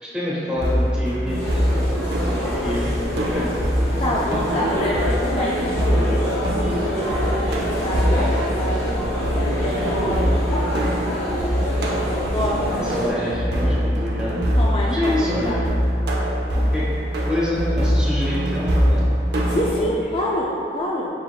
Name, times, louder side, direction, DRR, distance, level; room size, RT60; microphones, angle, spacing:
voice 1, 0.0-1.7 2.2-3.5 12.7-14.4 14.9-15.6 16.5-16.9 17.2-19.1 19.7-19.9, left 1 dB, 5° right, -9 dB, 1.0 m, -27 dB
sound 1, 0.6-19.7, equal, 70° right, 0.5 m, -23 dB
sound 2, 1.3-13.1, equal, 15° left, 1.1 m, -26 dB
voice 2, 4.0-7.1 7.4-8.8 9.4-11.7 12.1-13.2 14.6-15.8 19.5-21.1, left 1 dB, 30° left, -4 dB, 0.3 m, -27 dB
6.3 x 3.3 x 2.2 m, 2.5 s
head